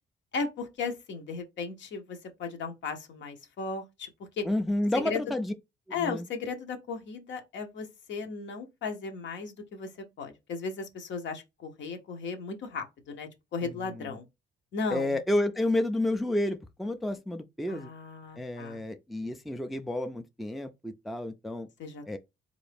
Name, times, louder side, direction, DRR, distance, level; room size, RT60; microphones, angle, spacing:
voice 1, 0.3-4.1 4.4-4.5 5.0-5.2 5.9-9.9 10.2-14.3 14.7-15.2 17.7-18.8 21.8-22.2, left 4 dB, 70° left, 0.9 m, -36 dB
voice 2, 4.4-5.5 5.9-6.3 13.6-14.2 14.9-17.9 18.4-21.7 22.1-22.2, left 1 dB, ahead, 0.3 m, -30 dB
3.8 x 2.6 x 3.4 m
cardioid pair, 90°, 20 cm